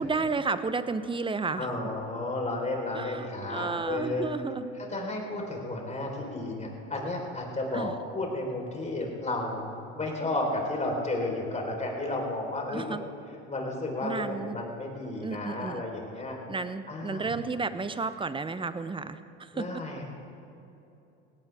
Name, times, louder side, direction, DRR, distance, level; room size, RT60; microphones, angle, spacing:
voice 1, 0.0-1.7 2.9-4.7 7.7-7.9 12.7-13.0 14.0-14.6 15.2-15.8 16.5-19.7, right 4 dB, 15° right, 12 dB, 0.8 m, -32 dB
voice 2, 1.6-4.3 4.9-13.1 13.5-16.4 16.9-17.3 19.5-20.0, left 2 dB, 20° left, 0 dB, 4.3 m, -32 dB
18.0 x 17.0 x 3.6 m, 2.9 s
hypercardioid pair, 85°, 34 cm